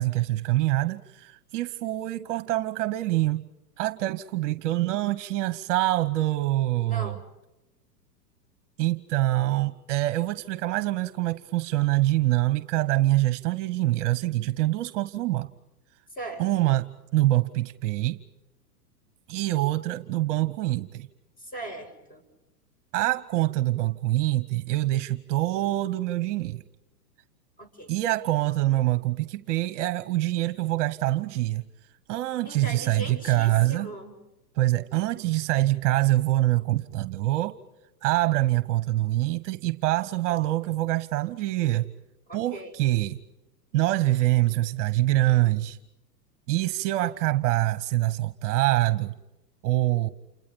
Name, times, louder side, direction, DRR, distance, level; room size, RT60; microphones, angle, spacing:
voice 1, 0.0-3.5 3.8-7.2 8.8-15.5 16.4-18.2 19.3-21.1 22.9-26.6 27.9-31.7 32.1-33.9 34.6-37.6 38.0-41.9 42.3-43.2 43.7-45.8 46.5-49.1 49.6-50.1, right 16 dB, 45° right, 14 dB, 1.2 m, -25 dB
voice 2, 6.9-7.2 16.1-16.6 21.4-22.2 27.6-27.9 32.5-34.1 42.3-42.7, right 1 dB, 15° left, 8 dB, 6.9 m, -39 dB
29.0 x 29.0 x 5.4 m, 0.96 s
hypercardioid pair, 120°, 50 cm